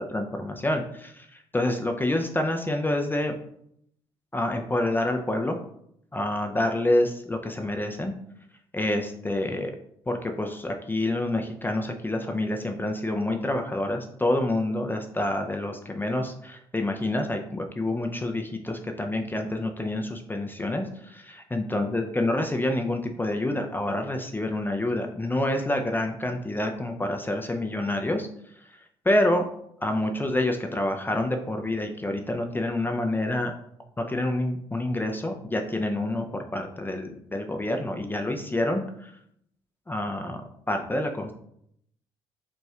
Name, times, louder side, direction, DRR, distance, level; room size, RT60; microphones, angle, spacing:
voice 1, 0.0-3.3 4.3-5.6 6.1-8.1 8.7-9.7 10.1-28.3 29.0-29.5 29.8-33.5 34.0-39.1 39.9-40.4 40.7-41.3, left 1 dB, 15° left, 4 dB, 0.6 m, -27 dB
5.3 x 3.1 x 2.4 m, 0.70 s
hypercardioid pair, 50°, 14 cm